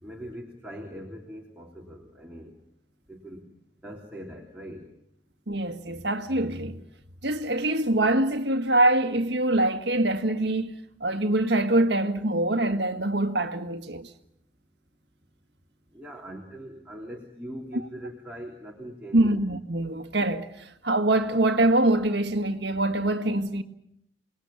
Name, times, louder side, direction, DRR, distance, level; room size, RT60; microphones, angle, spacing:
voice 1, 0.0-2.5 3.1-3.4 3.8-4.8 15.9-19.4, equal, 10° right, 3.3 m, -41 dB
voice 2, 5.5-6.8 7.2-10.7 11.0-14.1 19.1-23.6, right 1 dB, 65° right, 1.7 m, -24 dB
27.5 x 20.5 x 7.2 m
head